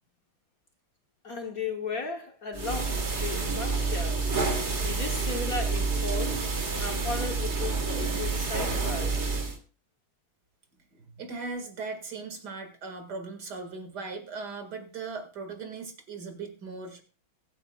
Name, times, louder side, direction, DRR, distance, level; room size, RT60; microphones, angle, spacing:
voice 1, 1.2-4.3 4.8-6.5 6.8-9.2, left 4 dB, 50° left, 1.3 m, -36 dB
sound 1, 2.5-9.6, right 4 dB, 35° right, 1.8 m, -28 dB
voice 2, 10.9-17.0, right 4 dB, 55° right, 2.5 m, -38 dB
23.5 x 9.0 x 2.3 m
omnidirectional pair, 2.3 m